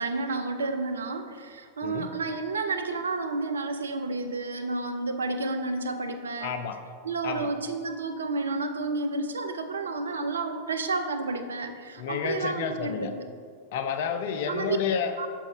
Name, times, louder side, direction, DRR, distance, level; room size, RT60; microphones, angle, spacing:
voice 1, 0.0-6.6 7.0-13.3 14.5-14.8 15.2-15.3, right 3 dB, 70° right, 7 dB, 0.5 m, -31 dB
voice 2, 6.4-6.8 7.2-7.5 12.0-13.1 13.7-15.1, left 7 dB, 50° left, 7 dB, 0.5 m, -30 dB
6.3 x 5.5 x 4.7 m, 2.1 s
figure-of-eight pair, 90°, 0 cm